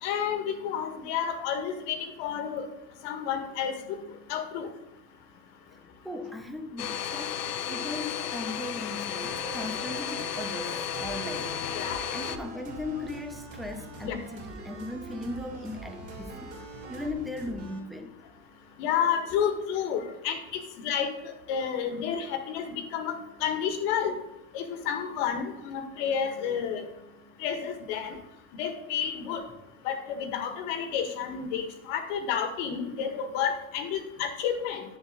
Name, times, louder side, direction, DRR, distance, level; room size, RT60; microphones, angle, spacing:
voice 1, 0.0-2.7 3.0-4.0 4.3-4.7 11.7-12.0 14.0-14.2 18.8-24.2 24.5-26.9 27.4-28.2 28.5-29.4 29.8-34.8, left 8 dB, 55° left, 1.8 m, -30 dB
voice 2, 6.0-11.5 12.1-16.5 16.9-18.1, left 2 dB, ahead, 0.3 m, -38 dB
Domestic sounds home sounds, 6.8-12.4, left 8 dB, 80° left, 1.0 m, -33 dB
sound 1, 9.2-17.8, right 3 dB, 30° right, 3.3 m, -43 dB
10.5 x 7.2 x 4.0 m
supercardioid pair, 135°, 45 cm